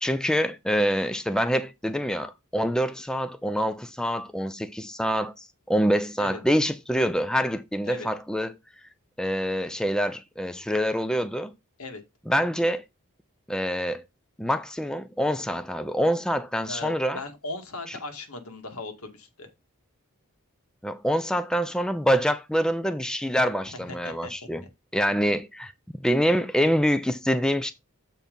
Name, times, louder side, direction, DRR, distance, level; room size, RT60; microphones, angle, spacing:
voice 1, 0.0-8.6 9.2-11.5 12.3-12.8 13.5-14.0 14.4-17.2 20.8-24.6 24.9-25.7 26.0-27.7, equal, 5° left, 0.5 m, -25 dB
voice 2, 16.7-19.5 23.8-24.3, left 2 dB, 85° left, 1.9 m, -38 dB
7.2 x 4.6 x 5.2 m
head